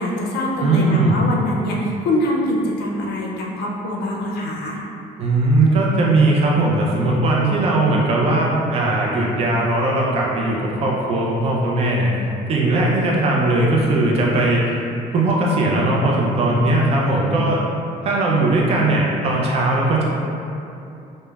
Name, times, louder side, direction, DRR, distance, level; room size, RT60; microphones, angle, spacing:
voice 1, 0.0-4.8, left 1 dB, 80° left, -2 dB, 0.4 m, -24 dB
voice 2, 0.6-1.2 5.2-12.1 12.5-14.7 15.1-17.6 18.0-20.0, right 2 dB, 35° right, -3 dB, 0.4 m, -18 dB
3.1 x 2.0 x 2.3 m, 2.7 s
cardioid pair, 110°, 17 cm